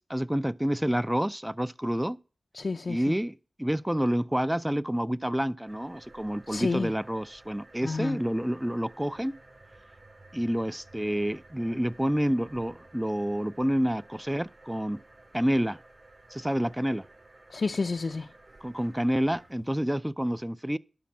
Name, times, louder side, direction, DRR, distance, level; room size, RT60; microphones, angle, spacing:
voice 1, 0.0-2.2 2.9-3.3 3.6-9.4 10.3-15.0 15.3-15.8 16.3-17.1 18.6-20.8, equal, 10° right, 0.4 m, -28 dB
voice 2, 2.5-3.2 6.5-6.9 7.8-8.2 17.5-18.3, left 4 dB, 65° left, 0.5 m, -30 dB
sound 1, 5.7-19.7, right 2 dB, 55° right, 6.3 m, -54 dB
12.0 x 5.3 x 7.1 m
cardioid pair, 50°, 0 cm